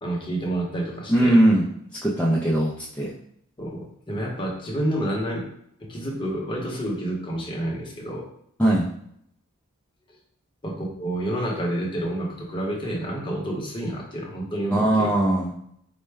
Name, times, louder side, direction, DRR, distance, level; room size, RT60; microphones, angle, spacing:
voice 1, 0.0-1.4 3.6-5.5 5.8-8.3 10.6-15.1, right 1 dB, 25° left, -2 dB, 0.8 m, -29 dB
voice 2, 1.1-1.7 2.0-3.1 8.6-8.9 14.7-15.5, right 1 dB, 5° left, -5 dB, 0.4 m, -20 dB
4.4 x 2.1 x 3.3 m, 0.70 s
head